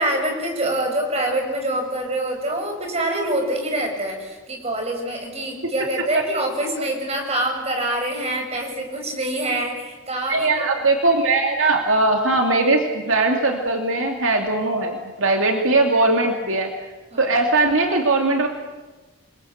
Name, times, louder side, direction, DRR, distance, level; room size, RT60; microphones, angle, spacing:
voice 1, 0.0-10.7 17.1-17.2, right 1 dB, 30° right, 2 dB, 6.7 m, -25 dB
voice 2, 10.3-16.7 17.2-18.5, right 2 dB, 75° right, 3 dB, 2.6 m, -20 dB
28.5 x 22.5 x 8.1 m, 1.2 s
head